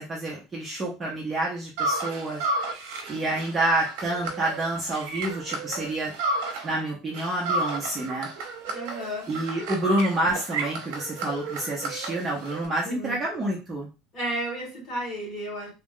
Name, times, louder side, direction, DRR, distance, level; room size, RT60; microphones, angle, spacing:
voice 1, 0.0-2.4 3.1-6.1 6.6-8.3 9.3-13.9, right 1 dB, 15° right, -4 dB, 0.6 m, -28 dB
sound 1, 1.8-6.8 7.1-12.7, right 2 dB, 65° right, 0.8 m, -32 dB
voice 2, 8.7-9.3 12.8-13.2 14.1-15.7, right 1 dB, 25° left, -4 dB, 1.8 m, -32 dB
3.1 x 2.4 x 3.6 m, 0.29 s
cardioid pair, 180°, 0 cm